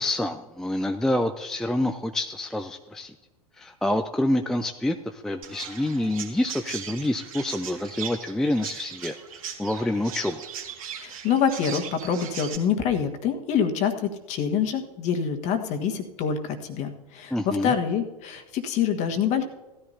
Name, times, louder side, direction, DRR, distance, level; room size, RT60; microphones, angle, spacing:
voice 1, 0.0-3.1 3.6-9.1 9.6-10.4 17.3-17.7, left 1 dB, ahead, 6 dB, 0.4 m, -27 dB
Chirp tweet, 5.4-12.6, right 8 dB, 60° right, 2.1 m, -38 dB
voice 2, 11.0-19.4, left 7 dB, 35° left, 7 dB, 1.4 m, -26 dB
17.0 x 13.5 x 2.8 m, 1.1 s
figure-of-eight pair, 90°, 20 cm